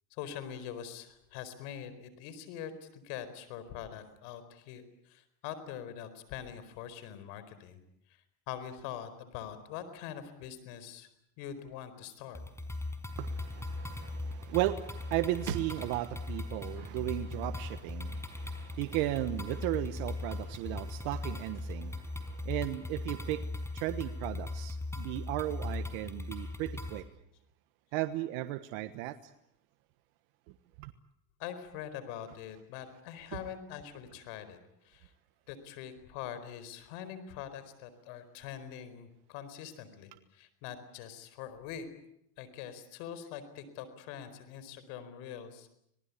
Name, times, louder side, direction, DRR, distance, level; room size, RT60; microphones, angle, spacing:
voice 1, 0.1-7.8 8.1-8.2 8.5-11.1 11.4-12.4 31.4-34.6 34.8-35.1 35.5-41.9 42.4-45.7, left 9 dB, 75° left, 12 dB, 4.6 m, -44 dB
sound 1, 12.4-27.0, left 2 dB, 5° left, 5.0 m, -39 dB
voice 2, 13.2-27.0 27.9-29.2 30.5-30.9, right 15 dB, 75° right, 9 dB, 1.4 m, -35 dB
27.0 x 19.0 x 8.4 m, 0.77 s
supercardioid pair, 105°, 45 cm